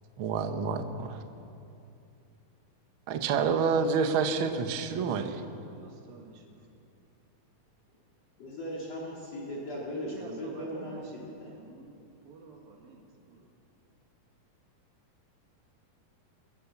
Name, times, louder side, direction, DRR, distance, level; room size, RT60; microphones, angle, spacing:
voice 1, 0.2-1.1 3.1-5.4, right 5 dB, 65° right, 6 dB, 1.3 m, -28 dB
voice 2, 5.4-6.8 9.9-13.4, right 4 dB, 85° right, 2 dB, 3.9 m, -50 dB
voice 3, 8.4-11.5, equal, 50° left, -4 dB, 3.6 m, -38 dB
23.0 x 16.5 x 7.2 m, 2.7 s
omnidirectional pair, 4.0 m